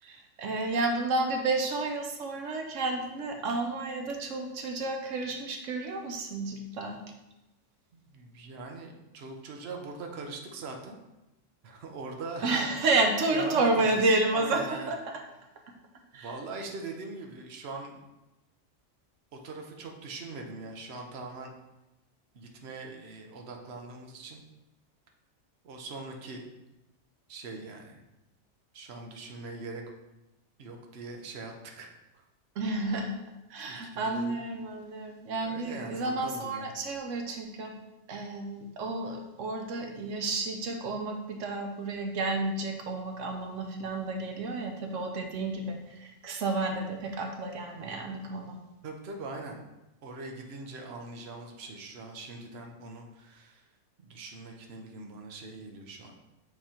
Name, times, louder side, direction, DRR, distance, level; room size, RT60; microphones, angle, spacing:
voice 1, 0.0-7.0 12.4-15.0 16.1-16.3 32.6-33.1 33.5-37.8 38.1-48.6, right 2 dB, 90° right, 3 dB, 1.1 m, -31 dB
voice 2, 7.9-11.0 11.6-12.6 13.3-14.0 14.3-14.9 16.1-18.0 19.4-21.5 22.3-24.4 25.6-26.4 27.3-28.0 28.7-29.8 30.6-31.9 32.1-32.2 33.7-34.4 35.4-36.7 48.8-49.6 50.0-53.6 54.0-56.2, right 3 dB, 60° right, 2 dB, 1.1 m, -41 dB
8.0 x 3.2 x 4.3 m, 0.96 s
omnidirectional pair, 1.2 m